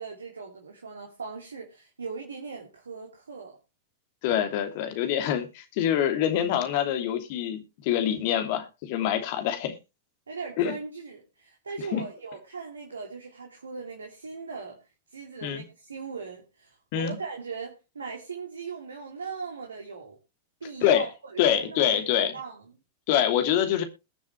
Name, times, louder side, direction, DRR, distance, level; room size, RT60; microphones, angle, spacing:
voice 1, 0.0-3.6 10.3-14.8 15.1-20.2 20.6-22.6, right 5 dB, 75° right, 2.7 m, -39 dB
voice 2, 4.2-9.7 10.6-10.7 11.9-12.0 15.4-15.6 16.9-17.1 20.8-21.1 21.4-22.3 23.1-23.8, left 10 dB, 50° left, 2.7 m, -25 dB
21.0 x 7.3 x 3.2 m
figure-of-eight pair, 90°, 0 cm